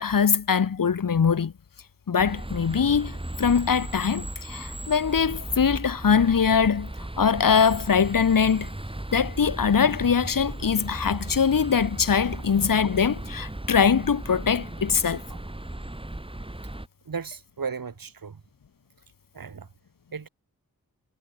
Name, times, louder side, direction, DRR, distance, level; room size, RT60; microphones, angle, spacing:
voice 1, 0.0-1.5 2.1-6.9 7.2-8.7 9.1-15.2, left 6 dB, 65° left, 1.4 m, -22 dB
sound 1, 2.2-16.9, right 1 dB, 15° right, 2.7 m, -36 dB
voice 2, 17.0-18.4 19.3-19.7 20.1-20.3, right 5 dB, 70° right, 2.6 m, -35 dB
cardioid pair, 40°, 36 cm